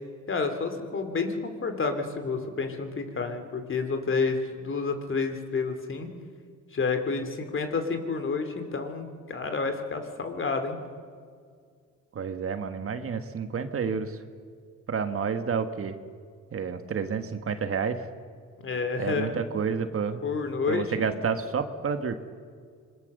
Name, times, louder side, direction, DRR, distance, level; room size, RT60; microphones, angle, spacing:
voice 1, 0.3-6.1 6.7-10.8 18.6-19.4 20.2-21.1, left 4 dB, 40° left, 7 dB, 2.8 m, -29 dB
voice 2, 12.1-14.2 14.9-16.0 16.5-18.1 19.0-20.2 20.7-22.2, right 6 dB, 45° right, 8 dB, 1.6 m, -30 dB
25.5 x 21.5 x 6.7 m, 2.1 s
cardioid pair, 90°, 30 cm